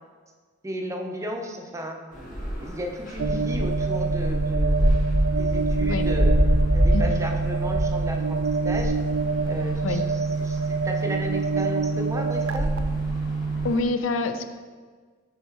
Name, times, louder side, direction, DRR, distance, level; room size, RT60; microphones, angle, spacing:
voice 1, 0.6-2.0 2.6-5.0 5.4-6.4 6.7-8.9 9.5-10.0 10.4-12.7, equal, 15° right, 3 dB, 0.6 m, -34 dB
sound 1, 2.1-13.8, equal, 40° left, 1.3 m, -26 dB
sound 2, 3.2-13.7, right 4 dB, 85° right, 0.3 m, -26 dB
voice 2, 13.6-14.4, left 3 dB, 70° left, 9 dB, 0.4 m, -26 dB
5.6 x 4.0 x 4.4 m, 1.5 s
head